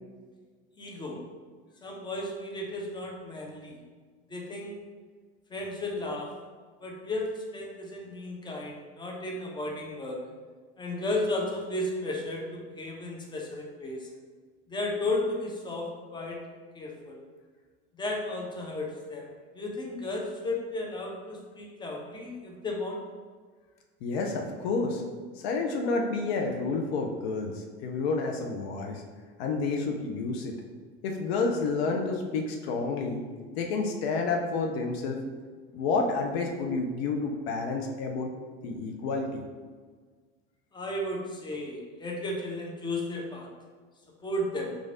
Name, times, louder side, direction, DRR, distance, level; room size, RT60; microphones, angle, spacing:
voice 1, 0.8-1.2 1.8-3.8 4.3-4.8 5.5-6.3 6.8-10.2 10.8-14.1 14.7-16.4 16.7-17.2 18.0-19.3 19.5-23.0 40.7-43.5 44.2-44.8, left 2 dB, 15° left, -1 dB, 0.7 m, -34 dB
voice 2, 24.0-25.0 25.4-29.0 29.4-30.6 31.0-33.2 33.6-35.2 35.7-38.3 38.6-39.4, left 4 dB, 70° left, 2 dB, 0.6 m, -29 dB
3.1 x 2.5 x 3.7 m, 1.5 s
hypercardioid pair, 75°, 32 cm